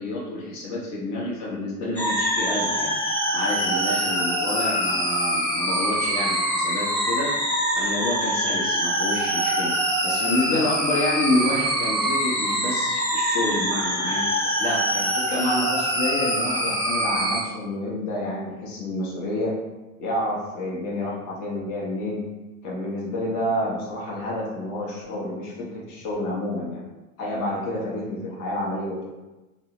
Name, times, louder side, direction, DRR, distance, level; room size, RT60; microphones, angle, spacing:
voice 1, 0.0-2.9 3.3-7.3 7.7-9.7 10.0-14.3 14.6-19.5 20.0-22.2 22.6-26.8 27.2-29.0, left 1 dB, 40° left, -4 dB, 0.8 m, -29 dB
sound 1, 2.0-17.4, equal, 5° left, 0.3 m, -24 dB
3.5 x 2.0 x 3.0 m, 1.1 s
figure-of-eight pair, 80°, 45 cm